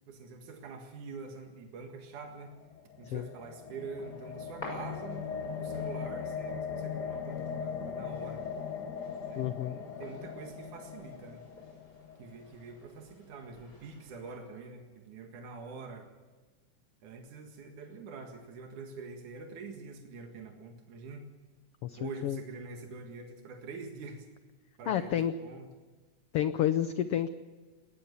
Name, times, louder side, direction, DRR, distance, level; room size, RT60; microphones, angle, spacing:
voice 1, 0.1-2.5 3.0-8.4 9.3-11.4 12.2-16.1 17.0-21.2 22.0-24.3 24.8-25.7, right 4 dB, 85° right, 3 dB, 3.3 m, -45 dB
sound 1, 2.5-12.7, left 6 dB, 55° left, 1.1 m, -39 dB
sound 2, 4.0-14.4, left 1 dB, 25° left, 7.1 m, -52 dB
voice 2, 9.4-9.8 21.8-22.4 24.9-25.4 26.3-27.3, left 11 dB, 70° left, 11 dB, 1.4 m, -30 dB
20.0 x 19.0 x 7.0 m, 1.3 s
omnidirectional pair, 3.4 m